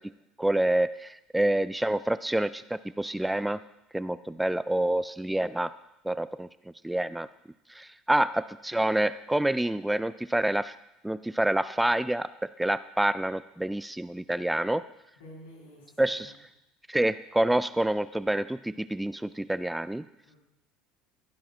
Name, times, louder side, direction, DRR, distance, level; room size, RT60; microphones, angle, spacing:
voice 1, 0.4-3.6 3.9-5.7 6.0-6.5 6.8-7.3 7.7-10.7 11.0-12.3 12.6-14.8 16.0-16.3 16.9-20.0, right 1 dB, 5° right, 15 dB, 0.3 m, -27 dB
voice 2, 15.2-16.2 20.2-20.4, equal, 70° left, -3 dB, 4.9 m, -50 dB
18.5 x 10.0 x 2.5 m, 0.88 s
figure-of-eight pair, 65°, 0 cm